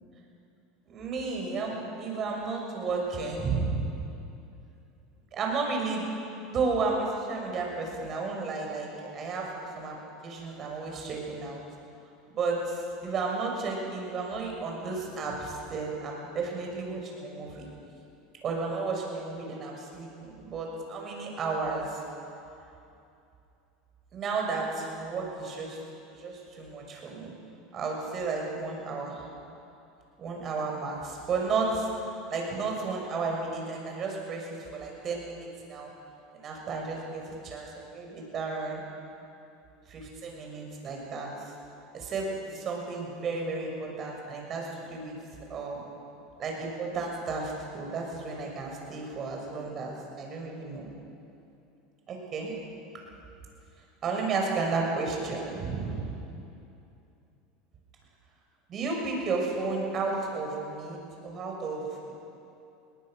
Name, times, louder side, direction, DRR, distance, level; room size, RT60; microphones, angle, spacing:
voice 1, 0.9-3.9 5.3-6.1 6.4-10.0 10.2-11.6 12.3-17.7 18.4-22.0 24.1-25.8 26.1-27.3 27.7-29.2 30.2-35.9 36.3-38.8 39.9-41.5 41.9-45.2 45.5-45.8 46.4-50.9 52.1-52.5 54.0-56.2 58.7-62.1, right 4 dB, 40° right, 0 dB, 6.3 m, -33 dB
21.0 x 19.0 x 6.5 m, 2.7 s
supercardioid pair, 105°, 0 cm